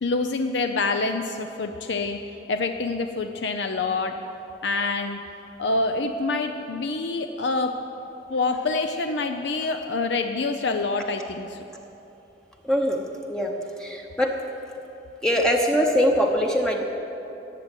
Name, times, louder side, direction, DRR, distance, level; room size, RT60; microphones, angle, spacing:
voice 1, 0.0-2.2 2.5-4.1 4.6-5.2 5.6-7.7 8.3-11.7, left 3 dB, 70° left, 6 dB, 0.6 m, -26 dB
voice 2, 12.7-13.0 13.3-13.5 13.8-14.3 15.2-16.8, equal, 5° left, 0 dB, 0.8 m, -22 dB
14.0 x 7.6 x 9.8 m, 3.0 s
head